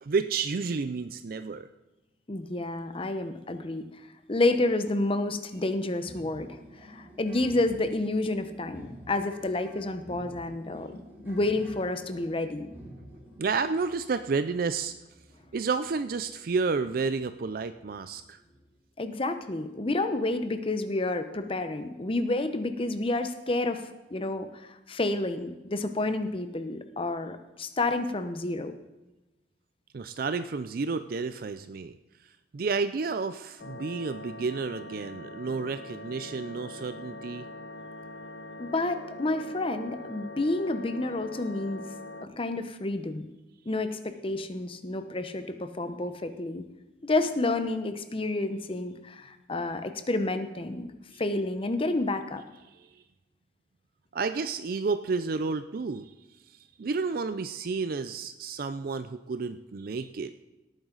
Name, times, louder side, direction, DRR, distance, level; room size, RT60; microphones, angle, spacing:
voice 1, 0.0-1.7 13.4-14.9 15.5-18.4 29.9-32.0 32.5-37.5 51.1-51.2 52.9-53.0 54.1-56.1 56.8-60.3, right 4 dB, 55° right, 11 dB, 0.4 m, -31 dB
voice 2, 2.3-4.0 4.3-12.7 19.0-28.7 38.6-41.8 42.4-43.3 43.7-46.7 47.0-50.9 51.2-52.4, left 2 dB, 30° left, 9 dB, 0.8 m, -30 dB
sound 1, 6.1-18.7, equal, 10° right, 3.2 m, -51 dB
sound 2, 33.6-42.2, left 2 dB, 75° left, 0.9 m, -43 dB
17.5 x 9.0 x 4.0 m, 1.0 s
head